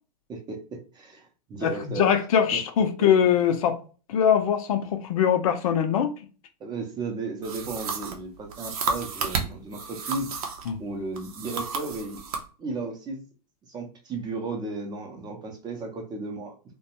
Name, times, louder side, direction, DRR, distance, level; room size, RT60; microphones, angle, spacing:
voice 1, 0.3-2.1 2.5-2.6 6.6-10.3 10.8-12.2 12.6-13.2 13.7-16.5, right 3 dB, 20° right, 0.6 m, -34 dB
voice 2, 1.6-3.8 4.1-6.1 10.7-10.8, left 8 dB, 60° left, 0.5 m, -22 dB
sound 1, 7.4-10.7 11.1-12.5, right 5 dB, 60° right, 0.7 m, -32 dB
2.3 x 2.2 x 2.9 m
hypercardioid pair, 120°, 21 cm